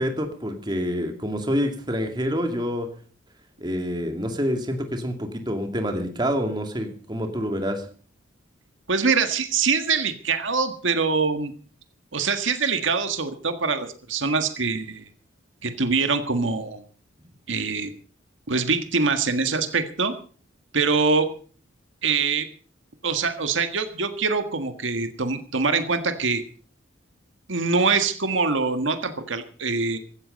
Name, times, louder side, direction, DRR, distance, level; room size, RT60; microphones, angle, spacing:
voice 1, 0.0-2.9 3.6-7.9, equal, 20° right, 5 dB, 2.4 m, -27 dB
voice 2, 8.9-11.5 12.1-15.0 15.6-16.8 17.5-17.9 18.5-20.1 20.7-21.3 22.0-22.5 23.0-26.4 27.5-30.0, right 4 dB, 80° right, 8 dB, 1.7 m, -24 dB
16.0 x 13.5 x 5.3 m, 0.42 s
head